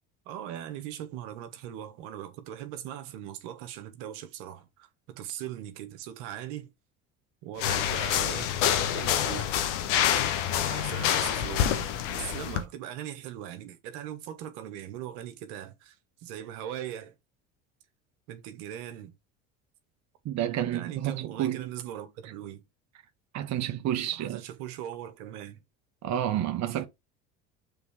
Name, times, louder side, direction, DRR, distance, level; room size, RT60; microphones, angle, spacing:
voice 1, 0.2-4.9 5.1-6.7 7.4-9.5 10.5-17.1 18.3-19.1 20.6-22.6 24.2-25.6, right 11 dB, 75° right, 1.4 m, -40 dB
sound 1, 7.6-12.6, left 10 dB, 80° left, 1.2 m, -27 dB
voice 2, 20.2-21.7 23.3-24.4 26.0-26.8, right 11 dB, 50° right, 1.1 m, -30 dB
6.8 x 3.6 x 4.9 m
hypercardioid pair, 75°, 35 cm